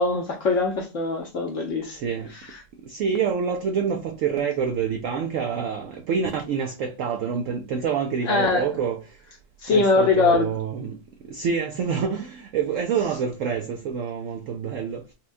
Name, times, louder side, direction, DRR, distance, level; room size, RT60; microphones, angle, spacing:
voice 1, 0.0-2.0 8.3-8.6 9.6-10.5, left 3 dB, 60° left, 0.9 m, -22 dB
voice 2, 1.9-2.3 2.8-9.2 9.7-15.1, right 6 dB, 90° right, 0.7 m, -27 dB
4.3 x 2.3 x 2.5 m
omnidirectional pair, 1.9 m